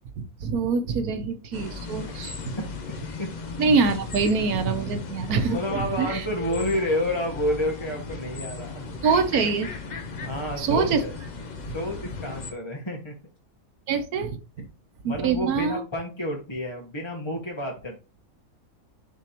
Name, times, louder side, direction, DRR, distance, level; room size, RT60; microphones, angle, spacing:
voice 1, 0.2-2.6 3.6-6.3 9.0-9.7 10.6-11.0 13.9-14.7 15.0-15.8, right 5 dB, 90° right, 8 dB, 1.4 m, -25 dB
sound 1, 1.5-12.5, left 4 dB, 40° left, 0.7 m, -36 dB
voice 2, 5.4-8.9 10.2-11.2 11.7-13.1 15.0-18.0, left 1 dB, 20° left, -1 dB, 1.2 m, -29 dB
10.0 x 3.6 x 3.0 m, 0.32 s
omnidirectional pair, 1.5 m